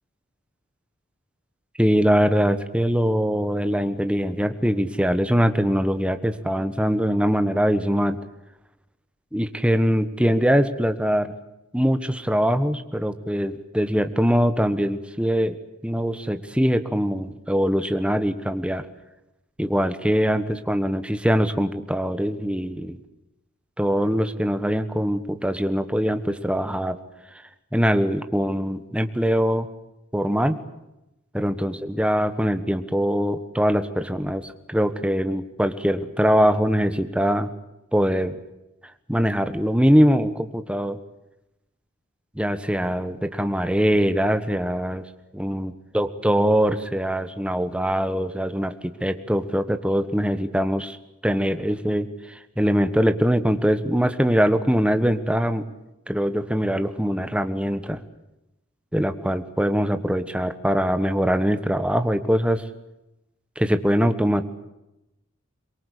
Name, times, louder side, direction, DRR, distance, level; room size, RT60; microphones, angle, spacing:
voice 1, 1.8-8.2 9.3-11.3 11.7-18.9 19.6-23.0 23.8-27.0 27.7-29.7 30.1-30.6 31.3-37.5 37.9-38.4 39.1-41.0 42.3-45.1 45.3-51.0 51.2-55.6 56.1-58.0 58.9-62.6 63.6-64.4, equal, 5° right, 9 dB, 1.3 m, -22 dB
23.5 x 23.0 x 8.4 m, 0.91 s
head